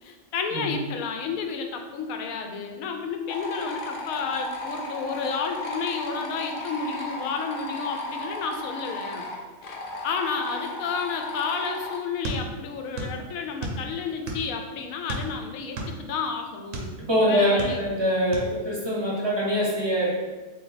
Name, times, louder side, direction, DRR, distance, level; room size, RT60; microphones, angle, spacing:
voice 1, 0.0-9.3 9.6-9.8 10.0-16.9 17.3-17.8, left 5 dB, 80° left, 5 dB, 1.0 m, -31 dB
sound 1, 3.3-12.0, left 1 dB, 60° left, 0.6 m, -35 dB
sound 2, 12.2-13.2 13.4-14.6 15.1-16.9 17.4-18.0 18.3-18.5, right 1 dB, 70° right, 1.1 m, -33 dB
voice 2, 17.0-20.2, equal, 25° right, -4 dB, 0.6 m, -24 dB
3.4 x 3.0 x 3.9 m, 1.3 s
omnidirectional pair, 1.4 m